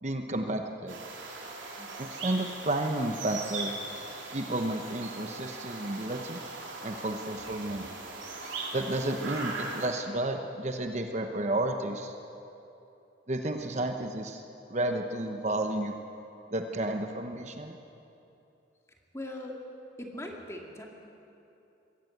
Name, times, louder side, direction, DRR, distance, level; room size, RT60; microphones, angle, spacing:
voice 1, 0.0-1.0 2.2-3.8 4.3-6.4 6.8-7.9 8.7-12.2 13.3-14.4 14.7-16.0 16.5-17.8, right 1 dB, 40° right, 5 dB, 0.9 m, -31 dB
sound 1, 0.9-9.9, right 3 dB, 90° right, 3.6 m, -39 dB
voice 2, 19.1-19.6 20.0-20.9, left 1 dB, 15° left, 0 dB, 2.3 m, -40 dB
22.0 x 16.5 x 8.0 m, 2.8 s
head